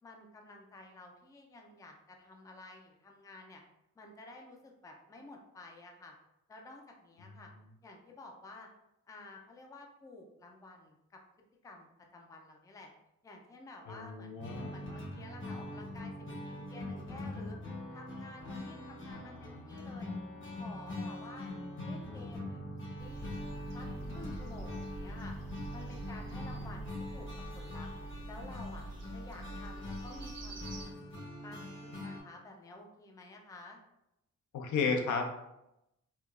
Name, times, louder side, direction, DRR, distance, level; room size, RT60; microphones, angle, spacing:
voice 1, 0.0-3.6 4.0-6.2 6.5-7.5 7.8-8.7 9.1-11.2 11.6-12.9 13.2-14.4 14.7-17.6 17.9-20.1 20.6-21.5 21.9-23.3 23.7-25.4 25.7-27.3 27.5-27.9 28.3-28.8 29.1-30.6 31.1-33.8, left 2 dB, 10° left, 2 dB, 0.3 m, -52 dB
voice 2, 13.9-14.8 26.6-26.7 34.5-35.4, left 5 dB, 80° left, 3 dB, 0.6 m, -33 dB
sound 1, 14.4-32.2, left 1 dB, 40° left, 0.8 m, -43 dB
sound 2, 23.0-30.8, right 2 dB, 60° right, 0.7 m, -45 dB
4.5 x 2.2 x 2.4 m, 0.87 s
wide cardioid pair, 150°, 29 cm